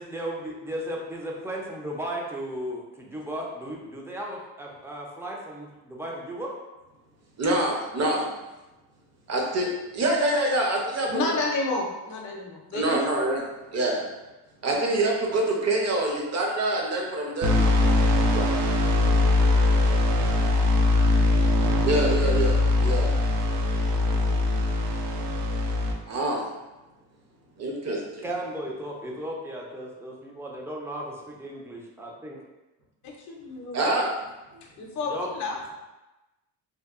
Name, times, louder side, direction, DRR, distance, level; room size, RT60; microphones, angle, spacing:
voice 1, 0.0-6.6 14.0-14.1 28.2-32.4 35.1-35.3, right 1 dB, 5° right, -2 dB, 0.3 m, -35 dB
voice 2, 7.4-8.2 9.3-11.3 12.7-13.4 13.7-14.0 14.6-18.5 21.8-23.1 26.1-26.5 27.6-28.0 33.7-34.1, right 1 dB, 40° right, 0 dB, 0.6 m, -26 dB
voice 3, 11.1-13.3 33.0-33.8 34.8-35.6, left 3 dB, 45° left, 0 dB, 0.5 m, -30 dB
sound 1, 17.4-25.9, left 2 dB, 80° right, 0.5 m, -22 dB
2.8 x 2.2 x 2.3 m, 1.1 s
cardioid pair, 100°, 42 cm